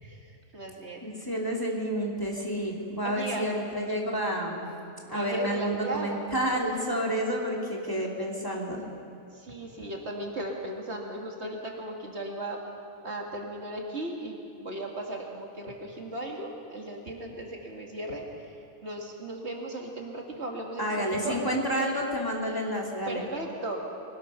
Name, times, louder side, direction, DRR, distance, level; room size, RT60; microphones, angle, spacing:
voice 1, 0.0-1.1 3.0-3.5 5.1-6.3 9.3-12.6 13.0-18.5 18.8-21.4 23.1-23.8, right 1 dB, 50° right, 0 dB, 2.4 m, -36 dB
voice 2, 1.0-4.6 5.1-8.8 20.8-23.2, equal, 15° left, -2 dB, 2.7 m, -30 dB
24.0 x 19.5 x 5.7 m, 2.7 s
omnidirectional pair, 1.4 m